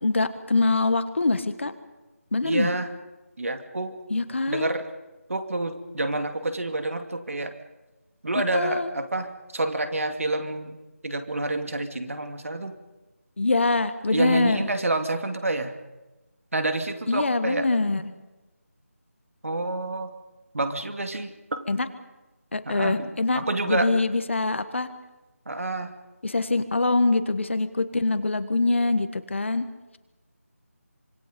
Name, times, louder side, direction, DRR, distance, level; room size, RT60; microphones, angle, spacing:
voice 1, 0.0-1.7 2.3-2.7 4.1-4.7 8.5-8.9 13.4-14.7 17.1-18.0 21.7-21.9 22.5-24.9 26.2-29.6, left 3 dB, 50° left, 11 dB, 1.6 m, -24 dB
voice 2, 2.4-2.9 3.4-4.0 4.5-4.8 5.3-7.5 8.2-10.8 11.0-12.8 14.1-15.7 16.5-17.7 19.4-20.1 20.5-21.7 22.7-23.1 23.3-23.9 25.5-25.9, right 2 dB, 65° right, 7 dB, 2.5 m, -28 dB
25.5 x 24.0 x 5.2 m, 1.1 s
figure-of-eight pair, 175°, 8 cm